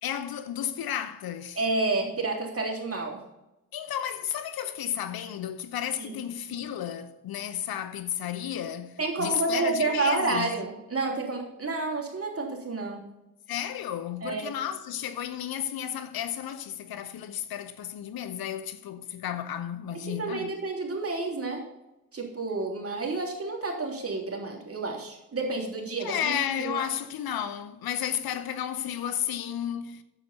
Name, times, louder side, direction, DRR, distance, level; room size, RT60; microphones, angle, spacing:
voice 1, 0.0-1.6 3.7-10.5 13.5-20.5 26.0-30.0, left 10 dB, 60° left, 0.9 m, -33 dB
voice 2, 1.5-3.2 6.0-6.2 9.0-13.0 14.2-14.5 20.0-21.6 22.1-26.8, right 3 dB, 35° right, 3.2 m, -30 dB
9.1 x 7.6 x 5.5 m
hypercardioid pair, 45°, 40 cm